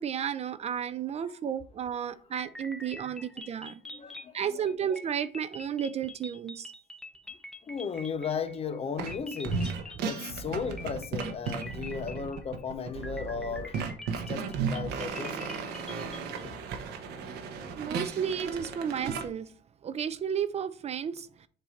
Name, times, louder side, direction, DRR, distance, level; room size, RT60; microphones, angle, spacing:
voice 1, 0.0-3.8 4.3-6.7 17.8-19.5 19.8-21.5, right 8 dB, 40° right, 0.5 m, -33 dB
sound 1, 2.4-8.8 9.1-10.5 10.8-12.6 13.0-16.4, left 2 dB, 5° left, 0.8 m, -45 dB
voice 2, 3.8-4.7 7.3-13.8 14.3-15.6 16.4-16.6, left 6 dB, 35° left, 0.7 m, -36 dB
sound 2, 9.0-9.2 9.4-19.3, right 5 dB, 75° right, 1.0 m, -35 dB
7.5 x 2.7 x 5.1 m
cardioid pair, 110°, 17 cm